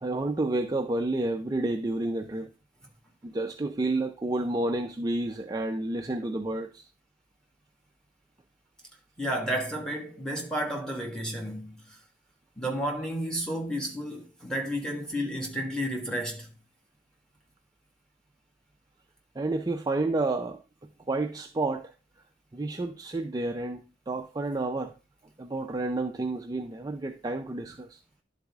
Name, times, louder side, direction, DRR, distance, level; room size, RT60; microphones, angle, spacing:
voice 1, 0.0-2.5 3.2-6.8 19.4-20.6 21.1-21.9 22.5-24.9 25.4-28.0, right 2 dB, 20° right, 0.4 m, -30 dB
voice 2, 9.2-12.0 12.6-16.5, equal, 5° left, 1.4 m, -32 dB
11.0 x 4.0 x 3.4 m
head